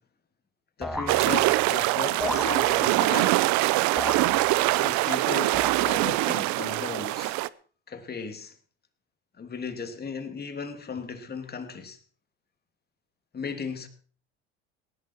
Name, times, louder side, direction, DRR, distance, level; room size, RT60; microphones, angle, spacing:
voice 1, 0.8-3.5 4.7-7.4 7.9-8.5 9.4-12.0 13.3-13.9, left 5 dB, 30° left, 2.8 m, -36 dB
sound 1, 0.8-1.8 2.2-3.2 4.0-5.0 5.5-6.3, equal, ahead, 2.1 m, -35 dB
sound 2, 1.1-7.5, right 19 dB, 65° right, 0.7 m, -23 dB
18.5 x 11.0 x 4.6 m
supercardioid pair, 90°, 31 cm